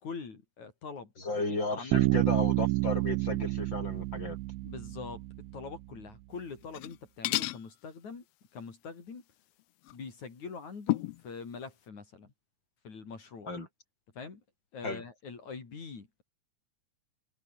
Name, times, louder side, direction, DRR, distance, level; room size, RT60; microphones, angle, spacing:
voice 1, 0.0-2.2 4.6-5.2 5.5-8.2 8.5-9.2 9.9-12.3 12.8-13.5 14.2-14.4 14.7-16.2, left 5 dB, 70° left, 5.6 m, -44 dB
voice 2, 1.2-4.4 13.5-13.7 14.8-15.0, left 2 dB, 35° left, 6.4 m, -34 dB
Bass guitar, 1.9-5.6, right 20 dB, 85° right, 2.1 m, -29 dB
sound 1, 6.6-7.0 7.2-7.6 9.8-9.9 10.9-11.2, left 18 dB, 90° left, 1.4 m, -31 dB
omnidirectional pair, 3.4 m